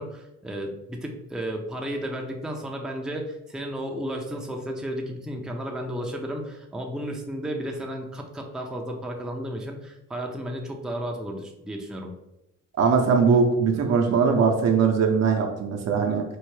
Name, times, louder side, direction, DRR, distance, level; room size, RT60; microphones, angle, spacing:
voice 1, 0.0-12.1, equal, ahead, 1 dB, 0.5 m, -33 dB
voice 2, 12.8-16.2, right 5 dB, 60° right, 2 dB, 0.7 m, -21 dB
4.5 x 2.0 x 3.1 m, 0.87 s
cardioid pair, 90°, 30 cm